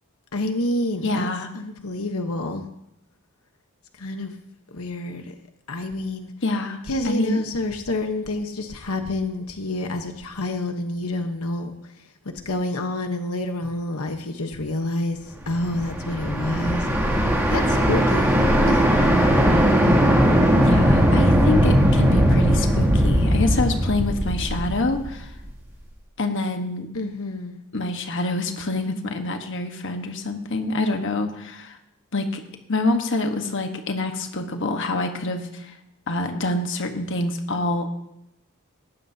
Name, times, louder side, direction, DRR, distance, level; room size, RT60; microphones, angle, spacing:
voice 1, 0.3-1.3 1.5-2.6 4.0-4.3 4.7-5.2 5.7-6.3 6.9-11.7 12.4-15.2 15.5-16.9 17.5-18.9 20.4-20.9 26.9-27.6 33.1-33.7, left 2 dB, 85° left, 6 dB, 1.2 m, -28 dB
voice 2, 1.0-1.5 6.4-6.8 7.0-7.4 20.6-25.3 26.2-26.9 27.7-31.8 32.1-32.4 32.7-35.7 36.1-37.9, left 2 dB, 60° left, 5 dB, 1.3 m, -26 dB
sound 1, 15.5-25.5, equal, 10° right, 2.6 m, -19 dB
19.0 x 15.0 x 2.8 m, 0.84 s
head